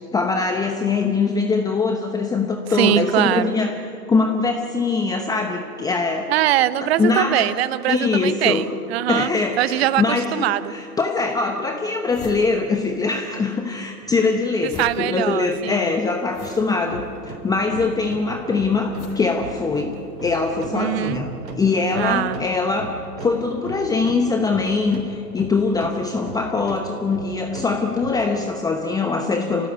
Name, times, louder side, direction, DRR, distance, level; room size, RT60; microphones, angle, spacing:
voice 1, 0.1-3.8 4.1-6.3 6.8-7.5 7.9-8.7 9.1-22.9 23.2-29.7, left 4 dB, 10° left, 4 dB, 0.9 m, -22 dB
voice 2, 2.7-3.5 6.3-9.3 9.6-10.7 14.8-15.8 20.7-21.2 22.0-22.4, right 14 dB, 40° right, 15 dB, 0.9 m, -22 dB
sound 1, 10.8-10.9 11.5-11.6 11.8-13.3 13.6-20.2, left 4 dB, 30° left, 6.1 m, -43 dB
sound 2, 16.8-28.7, right 3 dB, 85° right, 4.0 m, -38 dB
26.5 x 17.5 x 9.0 m, 2.5 s
hypercardioid pair, 130°, 48 cm